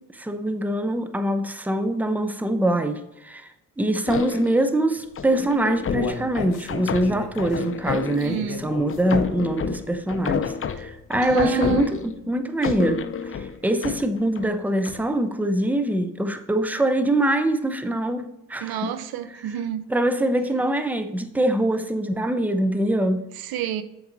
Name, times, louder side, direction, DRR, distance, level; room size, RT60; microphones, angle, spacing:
voice 1, 0.0-3.5 3.8-18.9 19.9-23.3, right 1 dB, 5° right, 0.6 m, -24 dB
sound 1, 4.1-4.7 5.2-8.4 8.9-12.3 12.6-14.5 14.9-15.1, left 7 dB, 35° left, 0.6 m, -30 dB
Human voice, 5.4-9.5 9.9-10.0 10.4-10.5, left 4 dB, 85° left, 1.0 m, -34 dB
voice 2, 8.2-8.6 11.2-12.0 18.6-19.8 23.4-23.8, right 11 dB, 80° right, 0.6 m, -29 dB
7.0 x 4.7 x 3.9 m
cardioid pair, 70°, 36 cm